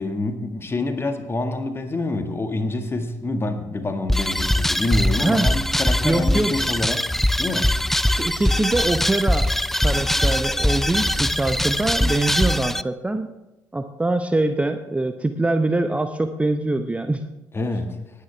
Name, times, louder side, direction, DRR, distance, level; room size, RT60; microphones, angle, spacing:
voice 1, 0.0-7.1 7.4-7.7 17.5-18.0, left 2 dB, 25° left, 7 dB, 1.8 m, -26 dB
sound 1, 4.1-12.8, left 1 dB, 5° left, 0.4 m, -22 dB
voice 2, 5.2-5.5 6.0-6.7 8.1-9.5 9.8-13.3 13.7-17.2, right 2 dB, 15° right, 8 dB, 0.8 m, -23 dB
19.5 x 9.5 x 3.4 m, 1.0 s
figure-of-eight pair, 50°, 9 cm